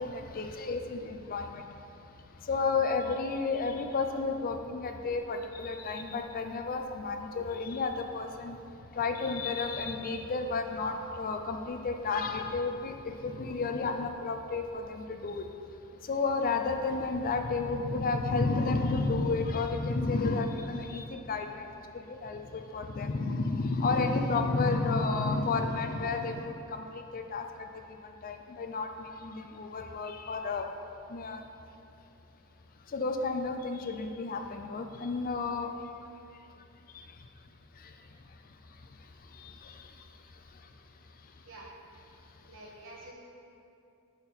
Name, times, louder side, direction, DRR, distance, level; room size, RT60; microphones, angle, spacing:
voice 1, 0.0-1.6 2.5-8.6 9.0-12.9 13.2-15.4 16.1-21.6 22.1-26.5 27.1-27.4 28.2-28.9 29.2-30.7 31.1-31.4 32.9-35.7, left 3 dB, 40° left, 5 dB, 0.5 m, -31 dB
voice 2, 42.4-43.1, right 2 dB, 60° right, -4 dB, 1.6 m, -48 dB
10.5 x 4.4 x 4.1 m, 2.6 s
head